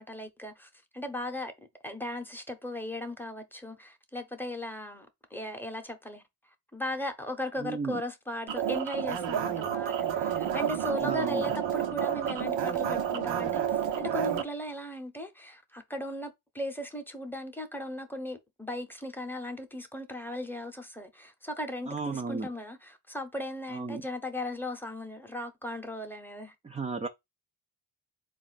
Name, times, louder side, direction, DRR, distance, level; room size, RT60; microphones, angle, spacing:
voice 1, 0.0-1.5 1.8-6.2 6.7-26.5 27.0-27.1, left 1 dB, 5° left, 0.7 m, -37 dB
voice 2, 7.6-8.0 11.0-11.4 21.9-22.5 23.7-24.0 26.6-27.1, right 4 dB, 15° right, 0.3 m, -34 dB
sound 1, 8.5-14.4, right 9 dB, 85° right, 0.7 m, -30 dB
4.1 x 2.5 x 3.9 m
cardioid pair, 100°, 43 cm